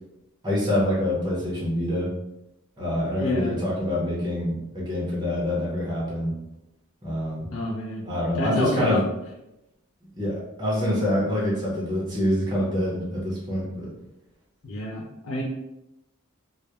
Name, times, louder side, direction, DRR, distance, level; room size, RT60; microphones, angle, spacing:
voice 1, 0.4-2.1 2.8-6.3 7.0-7.5 8.0-9.0 10.1-13.9, left 1 dB, 20° right, -6 dB, 0.6 m, -26 dB
voice 2, 3.2-3.5 7.5-8.1 8.3-9.0 14.6-15.4, left 1 dB, 70° left, -4 dB, 0.4 m, -28 dB
2.2 x 2.0 x 2.8 m, 0.91 s
head